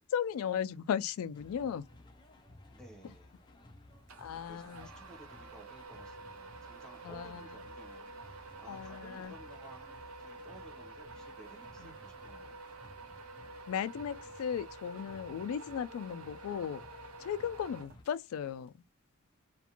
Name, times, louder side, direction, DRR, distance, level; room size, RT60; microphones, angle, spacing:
voice 1, 0.1-1.9 4.2-4.9 7.0-7.5 8.7-9.3 11.8-12.0 13.7-16.8 17.2-18.8, left 8 dB, 85° left, 0.3 m, -36 dB
sound 1, 1.3-18.0, left 1 dB, 20° left, 0.5 m, -57 dB
voice 2, 2.7-3.4 4.5-12.6, right 1 dB, 5° left, 0.8 m, -56 dB
sound 2, 4.1-18.4, right 3 dB, 80° right, 0.6 m, -49 dB
2.5 x 2.2 x 2.9 m
head